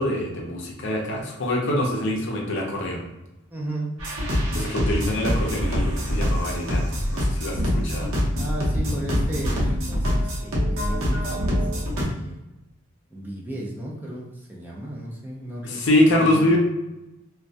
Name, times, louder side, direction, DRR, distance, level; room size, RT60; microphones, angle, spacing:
voice 1, 0.0-3.0 4.5-8.1 15.6-16.6, left 1 dB, 55° left, -1 dB, 0.5 m, -24 dB
voice 2, 3.5-3.9 8.4-12.4 13.1-16.6, right 1 dB, 10° right, -4 dB, 0.3 m, -34 dB
sound 1, 4.0-12.0, equal, 80° right, 0.7 m, -24 dB
2.2 x 2.1 x 2.6 m, 0.97 s
head